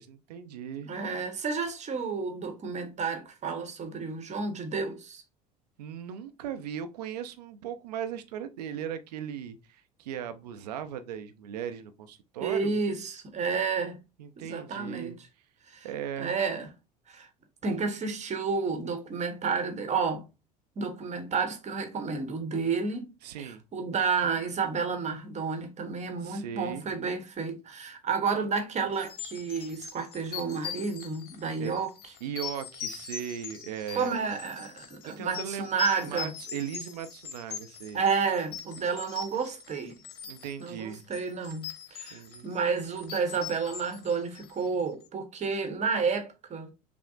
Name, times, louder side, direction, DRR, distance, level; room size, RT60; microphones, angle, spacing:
voice 1, 0.0-0.9 5.8-12.8 14.2-15.2 15.8-16.4 23.2-23.6 26.2-26.9 31.6-31.8 32.2-34.3 35.0-35.7 36.0-38.0 40.3-41.0 42.1-42.5, right 9 dB, 75° right, 0.5 m, -38 dB
voice 2, 0.8-5.2 12.4-14.0 14.4-15.2 15.7-15.9 16.2-16.7 17.1-17.3 17.6-20.3 20.8-23.1 23.4-31.9 33.9-36.3 37.9-39.9 40.6-46.7, right 5 dB, 35° right, 1.0 m, -31 dB
sound 1, 29.0-44.8, left 7 dB, 50° left, 0.8 m, -42 dB
5.8 x 2.0 x 2.5 m
hypercardioid pair, 65°, 21 cm